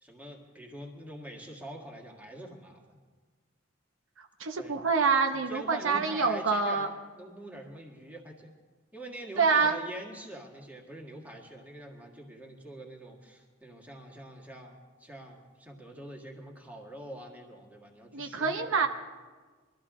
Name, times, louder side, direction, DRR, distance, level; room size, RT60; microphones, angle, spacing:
voice 1, 0.0-3.0 4.6-4.8 5.3-8.5 8.9-18.9, right 1 dB, 10° right, -1 dB, 1.8 m, -45 dB
voice 2, 4.4-6.9 9.4-9.8 18.1-18.9, right 5 dB, 70° right, 5 dB, 0.8 m, -26 dB
22.5 x 13.5 x 3.7 m, 1.4 s
head